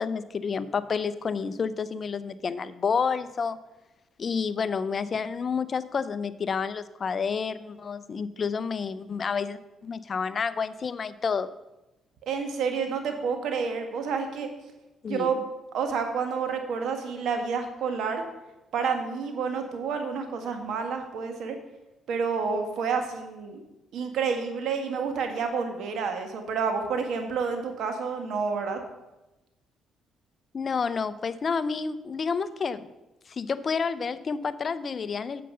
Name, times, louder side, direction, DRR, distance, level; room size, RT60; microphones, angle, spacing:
voice 1, 0.0-3.6 4.2-11.5 15.0-15.4 30.5-32.9 33.3-35.4, left 5 dB, 45° left, 15 dB, 0.5 m, -29 dB
voice 2, 12.3-14.5 15.1-15.4 15.7-18.2 18.7-21.6 22.1-23.6 23.9-28.8, right 5 dB, 75° right, 5 dB, 1.6 m, -29 dB
9.2 x 7.7 x 5.5 m, 1.0 s
cardioid pair, 90°, 0 cm